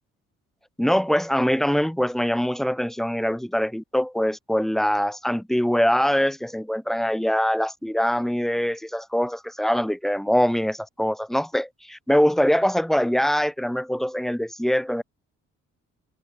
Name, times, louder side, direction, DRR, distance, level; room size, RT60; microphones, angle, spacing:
voice 1, 0.8-15.0, equal, ahead, 0.6 m, -23 dB
cardioid pair, 90°, 30 cm